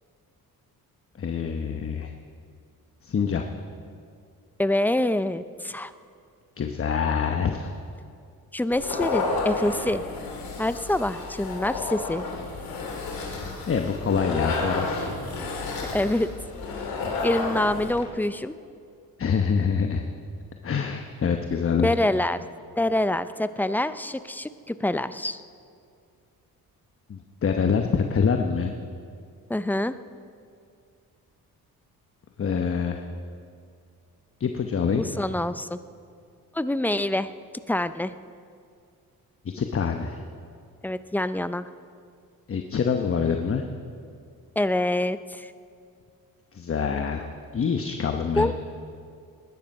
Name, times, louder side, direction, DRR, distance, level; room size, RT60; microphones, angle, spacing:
voice 1, 1.2-2.1 3.0-3.4 6.6-7.7 13.7-15.1 19.2-20.0 20.6-21.9 27.1-28.7 32.4-33.0 34.4-35.0 39.4-40.2 42.5-43.6 46.5-47.3 47.5-48.5, left 6 dB, 40° left, 5 dB, 1.0 m, -25 dB
voice 2, 4.6-5.9 8.5-10.0 10.6-12.3 15.9-16.3 17.2-18.6 21.8-22.4 22.8-25.4 29.5-30.0 34.9-35.8 36.5-37.3 37.7-38.1 40.8-41.7 44.6-45.5 48.4-48.5, left 1 dB, 5° left, 13 dB, 0.5 m, -26 dB
sound 1, 8.7-18.0, left 3 dB, 80° left, 2.9 m, -31 dB
20.0 x 10.5 x 5.5 m, 2.3 s
cardioid pair, 90°, 36 cm